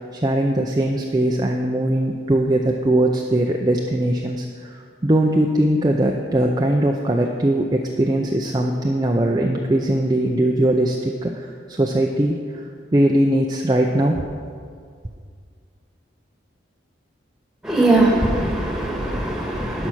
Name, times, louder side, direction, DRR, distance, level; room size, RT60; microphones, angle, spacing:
voice 1, 0.1-12.6 12.9-14.3, right 1 dB, 20° right, 1 dB, 0.5 m, -20 dB
voice 2, 17.6-19.9, right 2 dB, 5° right, -2 dB, 1.5 m, -20 dB
11.5 x 5.7 x 6.2 m, 2.1 s
head